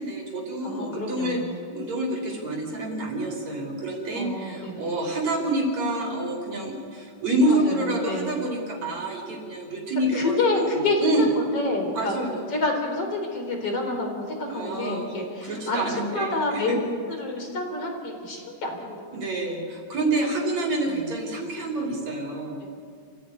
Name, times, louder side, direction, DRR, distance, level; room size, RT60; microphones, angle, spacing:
voice 1, 0.0-1.4 1.7-10.7 11.0-11.3 11.9-12.4 14.5-16.8 19.1-22.6, right 1 dB, 55° right, 0 dB, 4.5 m, -27 dB
voice 2, 0.6-1.6 4.1-4.9 7.5-8.4 10.1-11.3 11.5-12.2 12.5-15.8 16.1-16.8 17.2-19.3 20.9-21.0, left 2 dB, 45° left, 3 dB, 4.7 m, -28 dB
27.5 x 16.0 x 9.7 m, 2.2 s
omnidirectional pair, 3.8 m